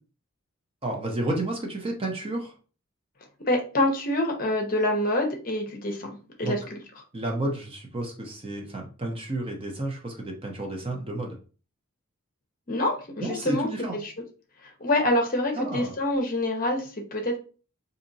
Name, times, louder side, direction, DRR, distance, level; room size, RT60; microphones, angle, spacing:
voice 1, 0.8-2.5 6.4-6.6 7.1-11.4 13.2-14.0 15.5-15.9, right 1 dB, 25° right, 1 dB, 0.7 m, -31 dB
voice 2, 3.5-6.8 12.7-13.7 14.0-14.1 14.8-17.4, left 1 dB, 40° left, 3 dB, 0.7 m, -26 dB
4.1 x 2.7 x 2.7 m, 0.37 s
head